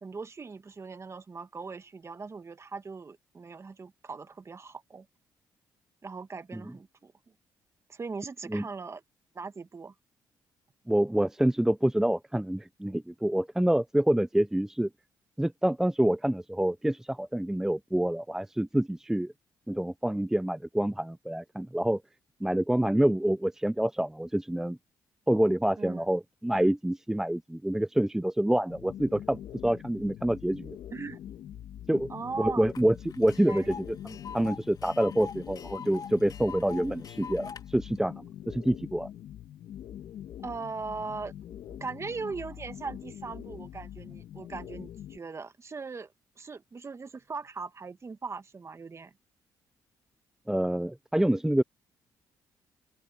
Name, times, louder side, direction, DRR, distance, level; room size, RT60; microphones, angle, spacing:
voice 1, 0.0-5.1 6.0-7.1 7.9-9.0 9.3-9.9 25.8-26.1 30.9-31.2 32.1-32.7 33.5-33.7 40.4-41.3 41.8-49.1, right 4 dB, 35° right, 1.7 m, -39 dB
voice 2, 10.9-14.9 15.4-19.3 19.7-22.0 22.4-24.8 25.3-30.8 31.9-32.1 32.4-39.1 50.5-51.6, right 1 dB, 5° right, 0.5 m, -27 dB
sound 1, 28.7-45.2, left 11 dB, 75° left, 2.2 m, -44 dB
Tick, 32.7-32.8 33.1-37.6, left 6 dB, 55° left, 2.2 m, -43 dB
open air
supercardioid pair, 65°, 8 cm